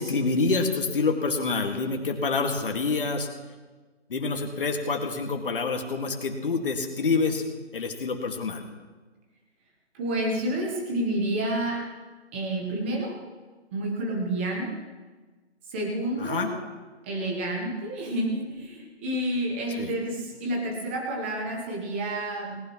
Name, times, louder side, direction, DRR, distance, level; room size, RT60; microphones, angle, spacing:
voice 1, 0.0-3.3 4.1-7.4 7.7-8.7 16.2-16.5 19.8-19.9, left 4 dB, 50° left, 4 dB, 2.0 m, -27 dB
voice 2, 9.9-11.8 12.3-13.2 13.7-14.8 15.7-16.6 17.0-22.6, right 1 dB, 10° right, 0 dB, 1.0 m, -29 dB
18.5 x 17.5 x 3.1 m, 1.3 s
figure-of-eight pair, 160°, 35 cm